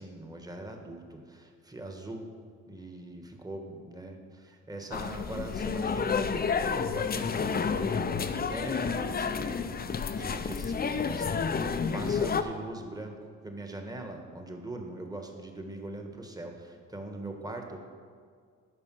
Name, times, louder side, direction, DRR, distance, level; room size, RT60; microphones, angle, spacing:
voice 1, 0.0-2.3 2.7-9.8 10.1-17.8, right 2 dB, 10° right, 3 dB, 1.4 m, -42 dB
sound 1, 4.9-12.4, left 5 dB, 30° left, 0.6 m, -30 dB
11.5 x 5.1 x 6.2 m, 2.1 s
cardioid pair, 90°, 30 cm